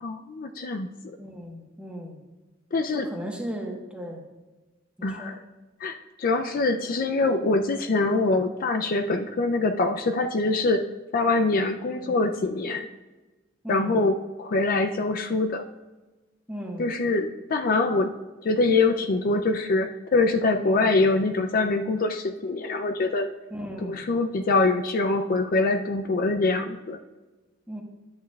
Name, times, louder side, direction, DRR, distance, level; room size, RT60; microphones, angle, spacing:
voice 1, 0.0-1.2 2.7-3.1 5.0-5.3 5.8-10.8 11.1-12.9 13.7-15.6 16.8-18.1 18.4-23.3 23.8-27.0, left 3 dB, 50° left, 6 dB, 0.4 m, -24 dB
voice 2, 1.2-2.2 2.9-4.2 5.0-5.4 11.9-12.2 13.6-14.0 16.5-16.9 20.6-21.0 23.5-24.0 27.7-27.8, equal, 5° right, 0 dB, 1.2 m, -36 dB
11.5 x 8.5 x 2.3 m, 1.2 s
head